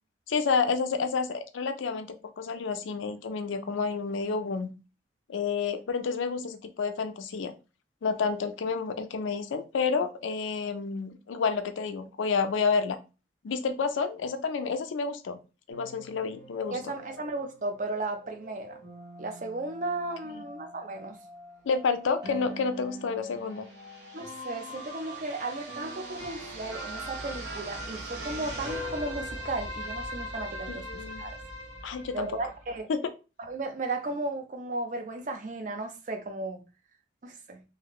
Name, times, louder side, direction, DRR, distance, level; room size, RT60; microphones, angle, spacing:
voice 1, 0.3-4.7 5.3-7.5 8.0-13.0 13.4-15.4 15.7-16.8 20.2-20.4 21.7-23.7 30.7-31.2 31.8-32.3 32.9-33.0, left 5 dB, 90° left, 0.4 m, -29 dB
sound 1, 15.7-32.8, equal, 60° right, 1.0 m, -41 dB
voice 2, 16.7-18.8 19.2-21.2 24.1-31.4 32.1-32.9 33.4-36.6 37.2-37.6, right 2 dB, 40° right, 0.4 m, -35 dB
2.7 x 2.4 x 2.9 m
head